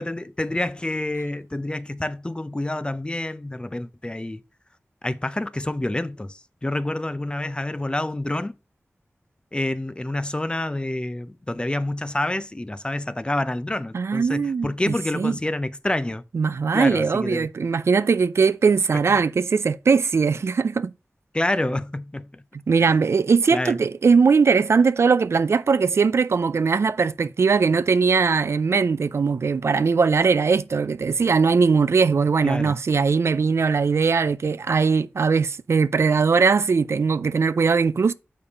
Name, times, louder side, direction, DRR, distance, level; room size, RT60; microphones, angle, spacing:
voice 1, 0.0-4.4 5.0-8.5 9.5-16.2 16.7-17.5 18.9-19.2 21.3-22.4 22.8-22.9 23.5-23.8 32.4-32.7, left 1 dB, 20° left, 0.5 m, -28 dB
voice 2, 13.9-15.3 16.3-20.9 22.7-38.1, right 5 dB, 70° right, 0.3 m, -20 dB
6.9 x 5.2 x 4.1 m
wide cardioid pair, 70°, 5 cm